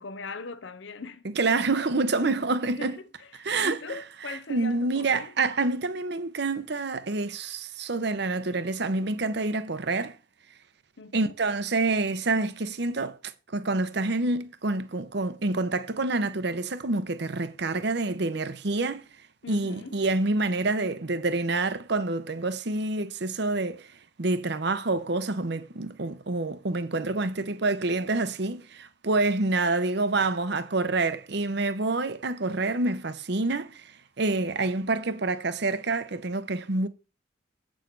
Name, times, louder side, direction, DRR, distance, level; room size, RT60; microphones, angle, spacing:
voice 1, 0.0-1.4 2.2-2.4 2.7-5.4 11.0-11.3 19.4-20.0, left 3 dB, 70° left, 0.7 m, -41 dB
voice 2, 1.4-3.0 3.4-3.8 4.5-10.2 11.1-13.2 13.5-19.0 19.5-23.9 24.2-33.9 34.2-36.9, right 3 dB, 60° right, 0.8 m, -27 dB
8.3 x 6.3 x 4.6 m
head